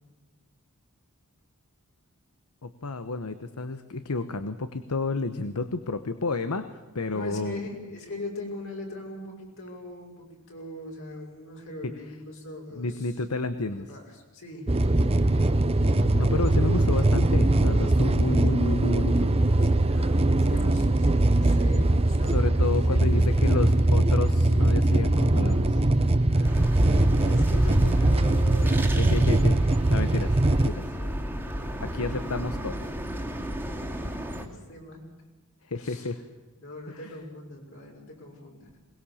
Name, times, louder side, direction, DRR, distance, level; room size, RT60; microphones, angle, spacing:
voice 1, 2.6-7.6 11.8-11.9 12.8-13.9 16.0-19.3 22.2-25.8 29.0-30.9 31.8-32.8 35.7-36.2 36.9-37.1, left 3 dB, 85° left, 11 dB, 1.0 m, -31 dB
voice 2, 7.1-13.1 13.7-14.8 19.6-22.4 22.9-23.9 26.3-29.3 31.3-31.4 34.0-34.1 34.4-35.0 35.8-36.1 36.6-38.8, left 1 dB, 65° left, 0 dB, 5.7 m, -40 dB
sound 1, 14.7-30.7, right 2 dB, 25° right, 0.8 m, -22 dB
sound 2, 26.4-34.5, equal, 10° right, 2.3 m, -30 dB
22.0 x 20.0 x 7.1 m, 1.3 s
head